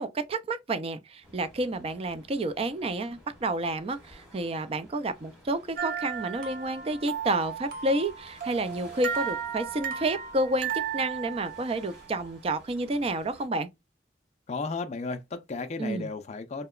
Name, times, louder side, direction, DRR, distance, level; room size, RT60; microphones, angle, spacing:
voice 1, 0.0-13.7 15.8-16.1, right 2 dB, 35° right, 0.4 m, -30 dB
sound 1, 1.2-13.5, equal, 5° right, 1.1 m, -54 dB
sound 2, 5.8-12.0, right 8 dB, 50° right, 0.7 m, -35 dB
voice 2, 14.5-16.7, left 3 dB, 40° left, 0.4 m, -34 dB
2.8 x 2.1 x 2.3 m
head